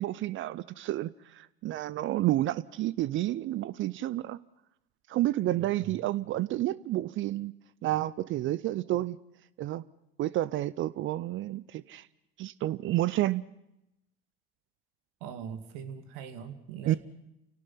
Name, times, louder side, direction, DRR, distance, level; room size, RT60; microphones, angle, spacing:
voice 1, 0.0-4.4 5.1-7.5 7.8-9.2 9.6-9.8 10.2-12.1 12.4-13.4 16.9-17.0, right 15 dB, 40° right, 0.7 m, -30 dB
voice 2, 5.6-6.0 15.2-17.0, right 7 dB, 60° right, 2.5 m, -41 dB
29.0 x 18.0 x 5.8 m
figure-of-eight pair, 70°, 29 cm